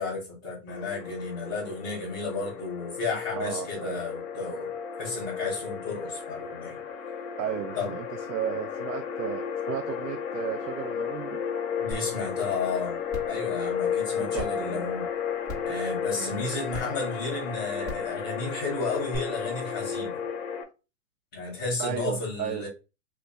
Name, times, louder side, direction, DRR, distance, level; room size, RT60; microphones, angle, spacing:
voice 1, 0.0-4.7 5.0-6.8 7.7-7.9 11.8-13.0 13.3-15.0 15.6-20.2 21.3-22.7, left 4 dB, 15° left, 0.4 m, -33 dB
sound 1, 0.7-20.6, left 7 dB, 55° left, 0.8 m, -33 dB
voice 2, 3.4-4.0 7.4-11.4 14.2-14.9 16.2-16.5 21.8-22.7, right 11 dB, 80° right, 0.5 m, -34 dB
sound 2, 11.9-12.0 12.5-12.6 13.1-13.3 14.4-14.5 15.5-15.7 16.7-16.8 17.8-18.1 19.1-19.2, left 1 dB, 20° right, 1.0 m, -36 dB
3.0 x 2.4 x 3.3 m
hypercardioid pair, 135°, 48 cm